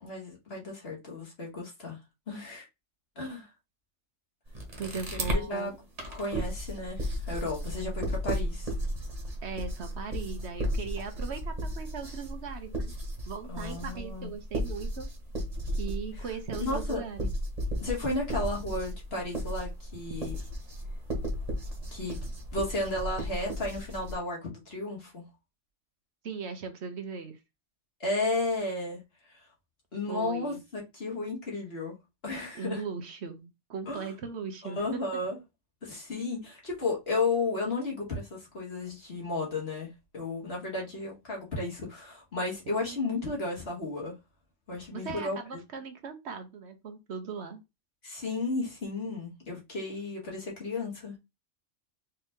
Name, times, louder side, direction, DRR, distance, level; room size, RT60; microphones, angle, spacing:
voice 1, 0.0-2.0 2.3-2.7 3.2-3.5 5.1-5.7 6.1-8.7 13.5-14.3 16.2-16.3 16.6-17.0 17.8-20.4 21.9-22.2 22.5-25.3 28.0-29.0 29.3-29.5 29.9-32.0 32.2-32.8 33.9-34.1 34.6-35.4 35.8-44.2 44.7-45.6 48.0-51.2, left 2 dB, 55° left, 2.1 m, -33 dB
sound 1, 4.5-5.4 6.0-24.2, equal, 30° right, 1.3 m, -34 dB
voice 2, 4.8-5.8 9.4-12.9 13.3-15.1 15.7-17.3 26.2-27.4 30.1-30.6 32.5-35.0 44.9-47.6, right 5 dB, 65° right, 1.0 m, -39 dB
4.5 x 2.9 x 3.6 m
omnidirectional pair, 1.3 m